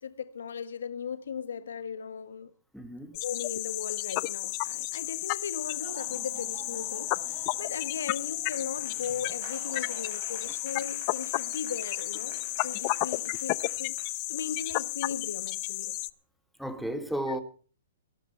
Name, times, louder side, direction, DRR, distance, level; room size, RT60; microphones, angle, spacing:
voice 1, 0.0-2.5 3.1-16.0 17.3-17.4, left 7 dB, 85° left, 1.4 m, -38 dB
voice 2, 2.7-3.2 7.5-7.6 10.4-10.5 16.6-17.4, right 1 dB, ahead, 1.6 m, -34 dB
sound 1, 3.1-16.1, left 23 dB, 35° left, 0.6 m, -33 dB
Laughter / Applause, 5.7-14.1, right 7 dB, 45° right, 5.7 m, -49 dB
18.0 x 12.0 x 4.3 m
hypercardioid pair, 155°, 0 cm